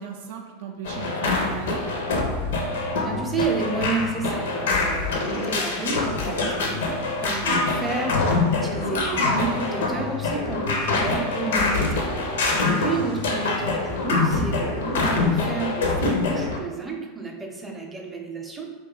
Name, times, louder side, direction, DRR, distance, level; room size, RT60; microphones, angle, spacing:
voice 1, 0.0-1.8 6.2-6.6, right 6 dB, 60° right, 1 dB, 0.3 m, -37 dB
sound 1, 0.8-16.6, left 3 dB, 70° left, 0.5 m, -25 dB
voice 2, 3.0-18.7, right 3 dB, 15° right, 1 dB, 0.6 m, -31 dB
2.7 x 2.3 x 3.8 m, 1.4 s
figure-of-eight pair, 80°, 0 cm